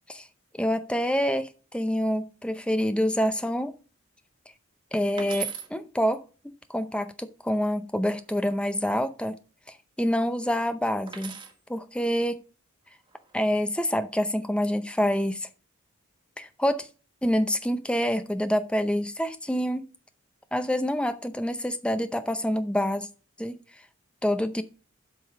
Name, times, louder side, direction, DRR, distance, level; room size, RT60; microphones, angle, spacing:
voice 1, 0.5-3.7 4.9-6.2 6.7-9.4 10.0-11.4 11.7-12.4 13.3-15.5 16.4-16.9 17.2-19.9 20.5-23.1 23.4-23.6 24.2-24.6, equal, 5° left, 0.6 m, -27 dB
sound 1, 5.2-5.7 7.9-8.5 11.1-11.6 12.9-13.4, right 8 dB, 20° right, 1.2 m, -38 dB
7.9 x 5.4 x 6.9 m
head